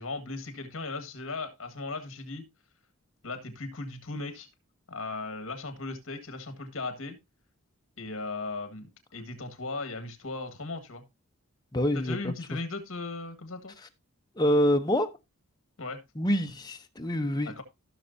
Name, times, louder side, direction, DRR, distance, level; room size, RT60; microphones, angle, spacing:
voice 1, 0.0-2.5 3.2-4.5 4.9-7.2 8.0-11.0 11.9-13.7 15.8-16.0 17.5-17.6, left 3 dB, 65° left, 1.8 m, -37 dB
voice 2, 11.7-12.6 14.3-15.1 16.2-17.5, equal, 20° left, 0.8 m, -26 dB
15.5 x 6.5 x 2.7 m
head